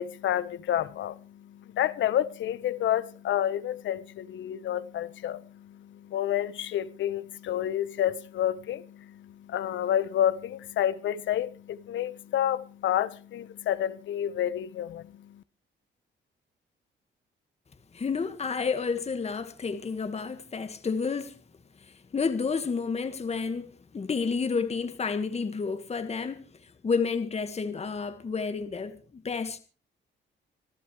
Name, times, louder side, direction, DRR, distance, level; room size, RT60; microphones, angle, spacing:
voice 1, 0.0-15.4, left 11 dB, 75° left, 1.1 m, -29 dB
voice 2, 17.9-21.4 21.8-29.6, left 5 dB, 30° left, 1.6 m, -30 dB
26.0 x 12.5 x 3.2 m
cardioid pair, 90°, 20 cm